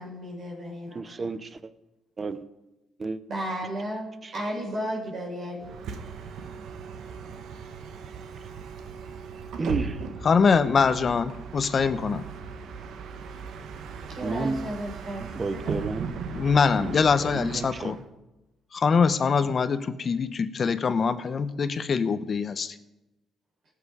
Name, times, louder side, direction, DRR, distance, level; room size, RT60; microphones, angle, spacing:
voice 1, 0.0-1.3 3.3-4.1 4.3-5.7 14.1-15.2 15.5-15.8, equal, 55° right, -3 dB, 4.4 m, -34 dB
voice 2, 0.9-1.7 2.2-2.4 3.0-3.2 4.2-4.3 9.6-10.0 14.2-14.6 15.2-16.2 16.8-17.9, right 3 dB, 35° right, 14 dB, 0.8 m, -32 dB
Bus, 5.6-18.0, right 5 dB, 75° right, 1.1 m, -38 dB
voice 3, 10.2-12.2 16.3-18.0 18.7-22.7, left 5 dB, 45° left, 12 dB, 0.8 m, -23 dB
18.0 x 6.8 x 4.9 m, 1.0 s
cardioid pair, 90°, 0 cm